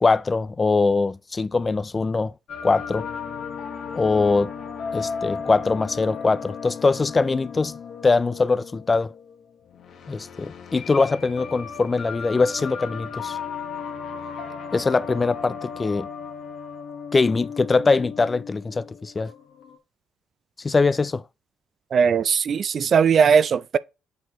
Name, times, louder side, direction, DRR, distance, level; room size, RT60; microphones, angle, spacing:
voice 1, 0.0-2.3 2.6-3.1 3.9-4.5 4.9-7.8 8.0-9.1 10.1-13.4 14.7-16.1 17.1-19.3 20.6-21.2, left 3 dB, 30° left, 0.3 m, -22 dB
sound 1, 2.5-19.8, left 6 dB, 70° left, 1.3 m, -35 dB
voice 2, 21.9-23.8, right 6 dB, 55° right, 0.4 m, -19 dB
8.2 x 4.4 x 3.0 m
cardioid pair, 90°, 0 cm